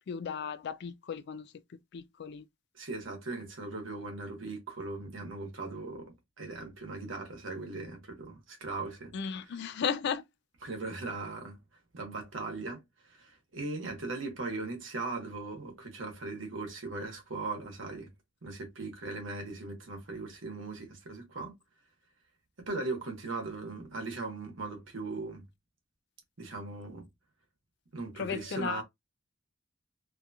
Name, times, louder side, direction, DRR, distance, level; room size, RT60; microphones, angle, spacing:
voice 1, 0.1-1.5 1.9-2.4 9.1-10.2 28.2-28.8, left 6 dB, 60° left, 0.4 m, -35 dB
voice 2, 2.7-9.7 10.6-11.6 11.9-18.1 18.4-21.5 22.6-25.5 26.4-27.1 27.9-28.8, right 3 dB, 75° right, 1.1 m, -39 dB
2.8 x 2.6 x 2.3 m
head